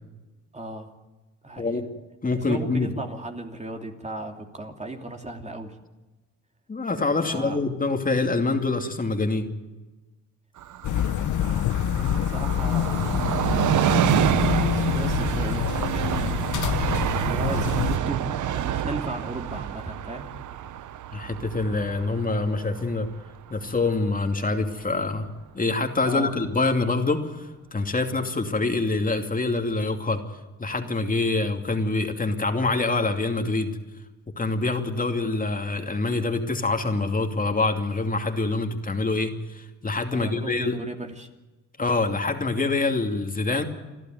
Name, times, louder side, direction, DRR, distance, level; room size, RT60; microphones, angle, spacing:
voice 1, 0.5-0.9 1.4-1.8 2.4-5.8 7.2-7.6 11.3-13.1 14.4-16.6 17.2-20.3 26.0-26.3 40.1-41.3, right 2 dB, 20° right, 4 dB, 2.8 m, -36 dB
voice 2, 2.2-2.9 6.7-9.5 21.1-23.1 23.5-25.3 25.5-30.2 30.6-33.7 34.4-40.8 41.8-43.6, left 3 dB, 25° left, 4 dB, 2.7 m, -25 dB
Train, 10.6-23.9 24.2-24.3, right 11 dB, 70° right, 1.0 m, -28 dB
sound 1, 10.8-18.0, left 11 dB, 70° left, 1.0 m, -26 dB
29.0 x 12.5 x 9.3 m, 1.2 s
cardioid pair, 80°, 31 cm